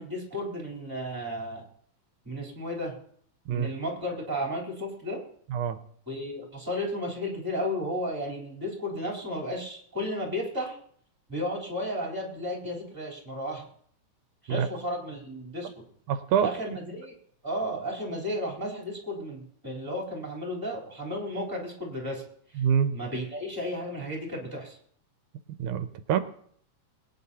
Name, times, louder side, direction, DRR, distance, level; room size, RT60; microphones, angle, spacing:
voice 1, 0.0-1.6 2.2-2.9 3.5-5.2 6.1-10.8 11.3-13.6 14.4-15.8 16.4-17.1 17.4-22.2 22.9-24.8, equal, 5° right, -2 dB, 3.2 m, -33 dB
voice 2, 16.1-16.5 22.6-22.9 25.6-26.2, right 8 dB, 85° right, 10 dB, 2.2 m, -25 dB
22.5 x 9.7 x 2.8 m, 0.62 s
omnidirectional pair, 3.4 m